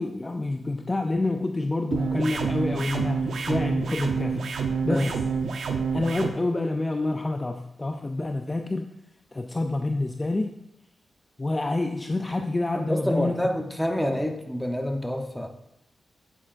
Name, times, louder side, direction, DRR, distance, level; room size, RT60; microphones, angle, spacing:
voice 1, 0.0-4.5 4.8-5.2 5.9-8.9 9.3-10.5 11.4-13.3, left 2 dB, 25° left, 5 dB, 0.5 m, -28 dB
sound 1, 1.9-6.3, right 5 dB, 85° right, 0.8 m, -28 dB
voice 2, 12.7-15.5, equal, 5° left, 4 dB, 0.9 m, -27 dB
8.7 x 8.5 x 2.5 m, 0.85 s
cardioid pair, 95°, 0 cm